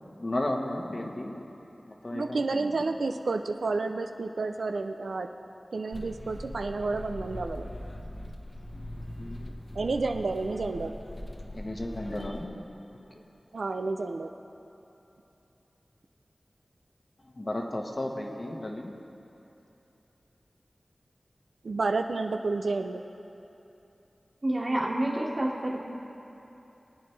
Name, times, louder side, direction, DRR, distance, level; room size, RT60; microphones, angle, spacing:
voice 1, 0.2-1.4 1.9-2.9 8.7-8.9 9.2-9.8 11.0-11.1 11.5-12.8 17.2-19.0, left 1 dB, 50° left, 1 dB, 1.2 m, -35 dB
voice 2, 2.1-5.3 5.7-7.7 9.7-10.9 13.5-14.3 21.6-23.0, right 3 dB, 90° right, 6 dB, 0.4 m, -30 dB
sound 1, 5.9-12.5, left 1 dB, 30° left, 1.1 m, -41 dB
voice 3, 24.4-25.8, right 1 dB, 40° right, -3 dB, 1.9 m, -28 dB
22.5 x 8.9 x 3.3 m, 2.9 s
wide cardioid pair, 50°, 0 cm